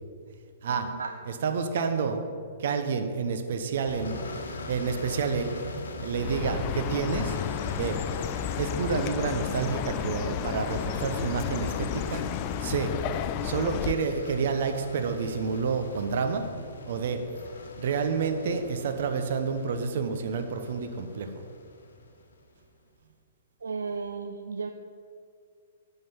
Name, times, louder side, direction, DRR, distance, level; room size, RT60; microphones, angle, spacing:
voice 1, 0.7-1.1 23.6-24.7, right 5 dB, 80° right, 5 dB, 0.4 m, -34 dB
voice 2, 1.3-2.2 2.6-4.3 4.7-5.5 6.0-7.4 7.7-8.0 8.6-12.2 12.6-12.9 13.4-16.5 16.9-17.2 17.8-21.3, right 5 dB, 60° right, 7 dB, 0.9 m, -29 dB
sound 1, 3.8-22.5, left 2 dB, 70° left, 1.1 m, -41 dB
Chirp tweet, 6.1-13.9, left 10 dB, 35° left, 0.4 m, -32 dB
9.2 x 3.9 x 7.1 m, 2.2 s
hypercardioid pair, 115°, 0 cm